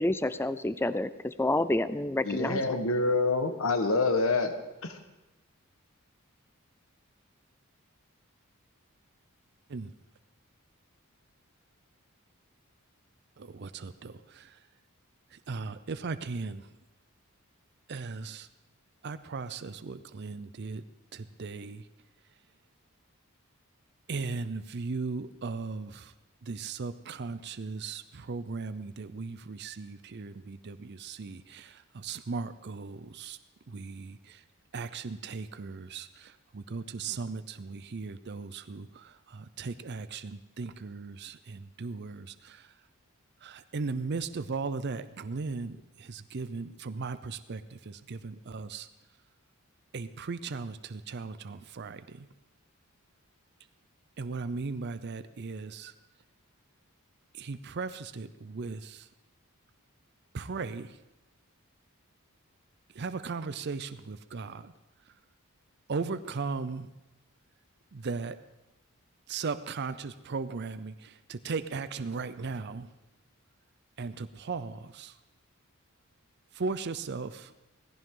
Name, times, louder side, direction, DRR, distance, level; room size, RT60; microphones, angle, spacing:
voice 1, 0.0-2.6, left 1 dB, 10° left, 14 dB, 0.4 m, -28 dB
voice 2, 2.2-4.5 4.8-5.0, left 3 dB, 65° left, 7 dB, 1.4 m, -26 dB
voice 3, 13.4-14.6 15.3-16.7 17.9-18.5 19.0-20.8 21.1-21.9 24.1-26.1 26.4-33.4 33.7-34.4 34.7-42.8 43.4-48.9 49.9-52.3 54.2-55.9 57.3-59.1 60.3-61.0 62.9-64.7 65.1-65.2 65.9-66.9 67.9-68.4 69.3-72.9 74.0-75.2 76.5-77.5, right 4 dB, 50° right, 12 dB, 0.5 m, -37 dB
17.5 x 16.0 x 3.8 m, 0.99 s
head